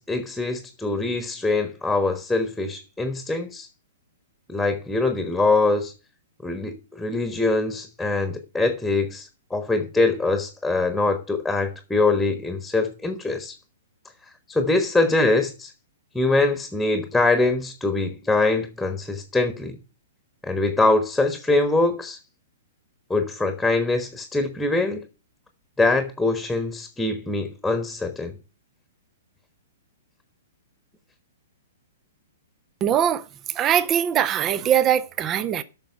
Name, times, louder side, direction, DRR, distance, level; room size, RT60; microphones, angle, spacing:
voice 1, 0.0-3.7 4.5-5.9 6.4-13.5 14.5-15.7 16.1-19.8 20.4-22.2 23.1-25.0 25.8-28.3, left 3 dB, 5° left, 1.4 m, -23 dB
voice 2, 32.8-33.2 33.5-35.6, right 9 dB, 25° right, 0.7 m, -21 dB
9.0 x 6.2 x 7.3 m
figure-of-eight pair, 115°, 0 cm